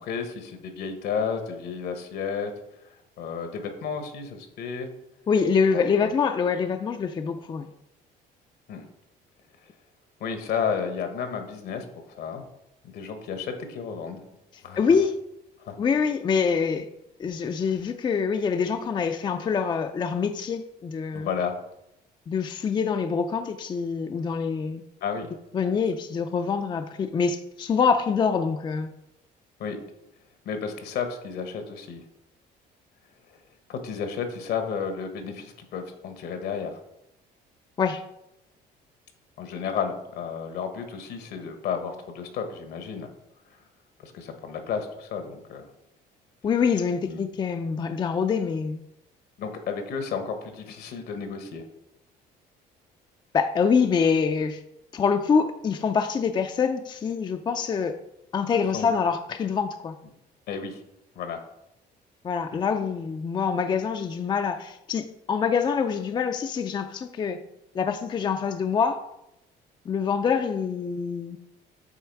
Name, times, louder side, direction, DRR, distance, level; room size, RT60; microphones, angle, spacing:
voice 1, 0.0-2.5 3.2-4.9 5.7-6.1 8.7-8.8 10.2-12.4 12.8-14.2 14.6-14.9 15.6-15.8 21.1-21.6 25.0-25.3 29.6-29.8 30.4-32.1 33.7-36.7 39.4-43.1 44.0-45.7 47.0-47.2 49.4-51.6 58.7-58.9 60.5-60.8 61.1-61.4 62.5-62.6, left 6 dB, 70° left, 1.1 m, -32 dB
voice 2, 5.3-7.7 14.8-15.1 15.8-16.9 17.2-21.3 22.3-24.8 25.5-28.9 37.8-38.0 46.4-48.8 53.3-54.6 54.9-58.0 58.3-60.0 62.2-67.4 67.7-69.0 69.9-71.4, left 6 dB, 25° left, 0.4 m, -25 dB
8.1 x 3.1 x 4.6 m
cardioid pair, 110°, 17 cm